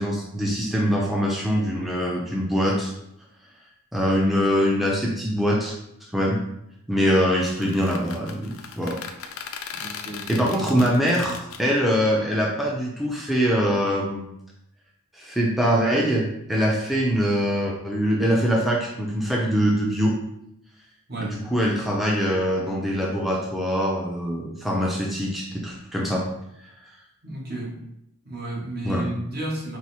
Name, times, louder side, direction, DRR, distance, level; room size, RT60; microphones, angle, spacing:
voice 1, 0.0-2.9 3.9-5.7 6.1-6.4 6.9-9.0 9.7-10.0 10.3-14.2 15.1-20.2 21.2-26.3 28.8-29.1, equal, ahead, -3 dB, 0.5 m, -23 dB
voice 2, 7.0-7.3 9.7-10.5 21.1-21.4 27.2-27.9 28.2-29.8, right 1 dB, 50° right, -1 dB, 0.9 m, -33 dB
sound 1, 7.5-11.6, left 7 dB, 75° left, 0.4 m, -38 dB
4.7 x 2.0 x 4.2 m, 0.79 s
head